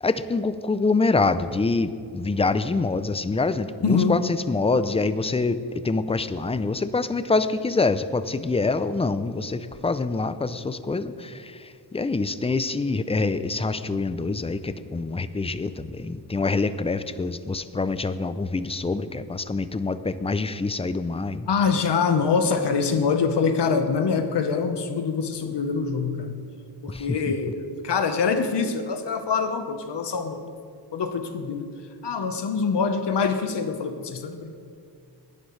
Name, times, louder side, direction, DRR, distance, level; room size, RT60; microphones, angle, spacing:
voice 1, 0.0-21.5 26.9-27.3, left 3 dB, 15° left, 13 dB, 0.4 m, -25 dB
voice 2, 3.8-4.2 21.5-26.4 26.8-30.5 30.9-31.7 32.0-34.5, left 5 dB, 90° left, 7 dB, 1.1 m, -24 dB
19.5 x 12.0 x 3.2 m, 2.3 s
wide cardioid pair, 145°, 40 cm